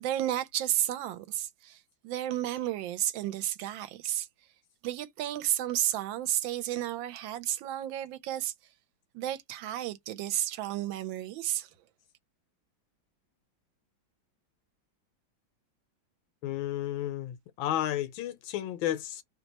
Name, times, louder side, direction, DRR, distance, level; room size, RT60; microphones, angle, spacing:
voice 1, 0.0-1.8 2.0-4.3 4.8-8.5 9.1-11.7, right 12 dB, 80° right, 1.3 m, -32 dB
voice 2, 16.4-19.2, left 12 dB, 90° left, 1.4 m, -32 dB
3.2 x 2.2 x 4.0 m
omnidirectional pair, 2.1 m